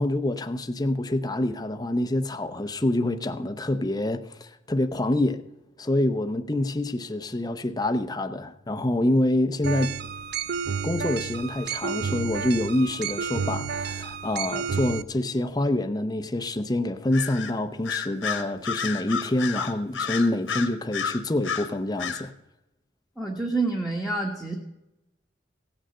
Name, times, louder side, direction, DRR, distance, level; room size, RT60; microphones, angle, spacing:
voice 1, 0.0-5.4 5.8-10.0 10.8-22.3, left 1 dB, 20° left, 0.7 m, -26 dB
sound 1, 9.6-15.0, right 6 dB, 55° right, 0.5 m, -31 dB
Bird vocalization bird call bird song, 17.1-17.5 17.8-21.7 22.0-22.2, left 6 dB, 85° left, 1.5 m, -30 dB
voice 2, 23.2-24.6, right 3 dB, ahead, 1.3 m, -27 dB
16.5 x 6.5 x 7.8 m
head